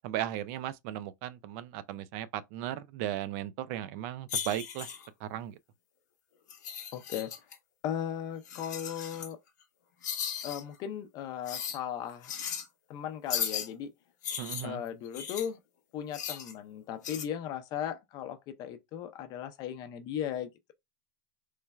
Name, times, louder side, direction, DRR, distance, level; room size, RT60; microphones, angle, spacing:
voice 1, 0.0-4.9 5.2-5.6 14.4-14.8, right 12 dB, 55° right, 0.3 m, -36 dB
sound 1, 4.3-5.1 6.5-7.5 8.4-9.3 10.0-10.6 11.5-11.8 12.2-12.7 13.3-13.7 14.2-15.5 16.1-16.5 17.0-17.2, left 8 dB, 90° left, 0.7 m, -36 dB
voice 2, 6.9-7.3 7.8-9.4 10.4-12.3 12.9-13.9 14.6-15.6 15.9-20.7, left 9 dB, 45° left, 0.5 m, -37 dB
3.1 x 2.1 x 2.2 m
supercardioid pair, 125°, 9 cm